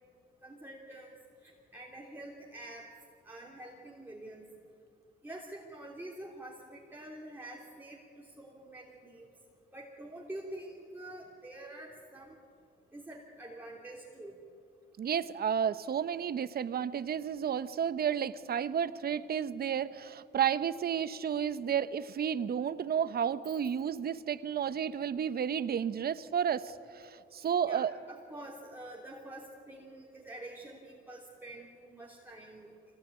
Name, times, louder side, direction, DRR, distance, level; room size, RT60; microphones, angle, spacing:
voice 1, 0.4-1.1 1.4-2.9 3.2-4.5 5.2-9.3 9.7-12.3 12.9-14.3 27.7-32.7, right 1 dB, 10° right, -3 dB, 3.1 m, -47 dB
voice 2, 15.0-28.0, right 8 dB, 50° right, 14 dB, 1.0 m, -32 dB
24.5 x 19.0 x 9.6 m, 2.5 s
cardioid pair, 90°, 20 cm